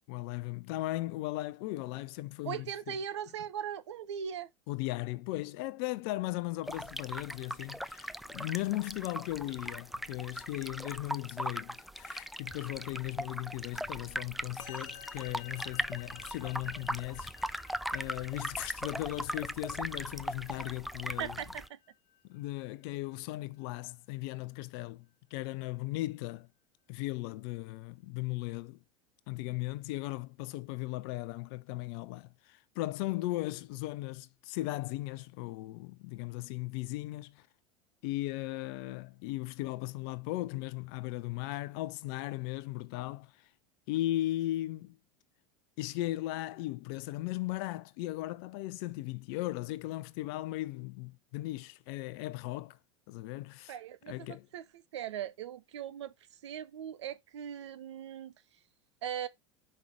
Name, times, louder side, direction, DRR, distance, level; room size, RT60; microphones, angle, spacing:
voice 1, 0.1-3.0 4.7-17.5 17.9-21.4 22.3-26.5 26.9-28.8 29.3-37.4 38.0-43.3 43.9-45.0 45.8-52.8 53.1-53.8 54.1-54.5, left 17 dB, 55° left, 0.6 m, -37 dB
voice 2, 2.4-4.5 21.1-21.8 53.7-56.1 56.4-58.3 59.0-59.3, right 9 dB, 70° right, 0.8 m, -39 dB
sound 1, 6.6-21.7, equal, ahead, 0.3 m, -39 dB
Musical instrument, 14.6-24.1, left 11 dB, 75° left, 1.0 m, -54 dB
5.5 x 4.6 x 5.0 m
figure-of-eight pair, 80°, 15 cm